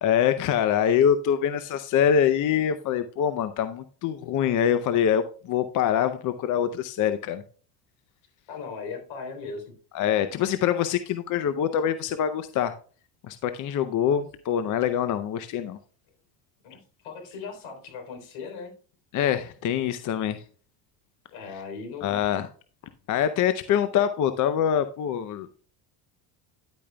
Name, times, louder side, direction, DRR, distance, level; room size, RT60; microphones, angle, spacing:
voice 1, 0.0-7.4 9.9-12.7 13.2-15.8 19.1-20.4 22.0-22.5 23.1-25.6, left 9 dB, 40° left, 0.6 m, -24 dB
voice 2, 8.5-9.7 16.6-16.8 17.0-18.7 21.3-22.2, left 5 dB, 75° left, 3.8 m, -38 dB
10.5 x 8.6 x 2.3 m
cardioid pair, 135°, 46 cm